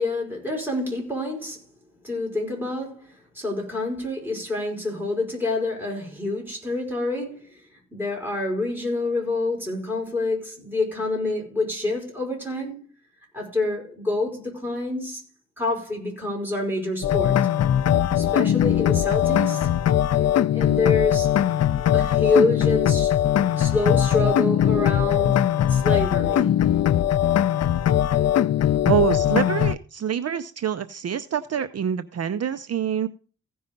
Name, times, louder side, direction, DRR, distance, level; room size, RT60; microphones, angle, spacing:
voice 1, 0.0-1.6 2.0-7.6 7.9-12.9 13.3-15.2 15.6-17.4 18.2-19.7 20.5-21.4 21.9-26.5, left 2 dB, 5° right, 5.2 m, -27 dB
sound 1, 17.0-29.7, left 10 dB, 60° left, 0.5 m, -20 dB
voice 2, 28.9-33.1, right 8 dB, 60° right, 0.6 m, -25 dB
15.5 x 5.5 x 5.2 m
wide cardioid pair, 120°, 29 cm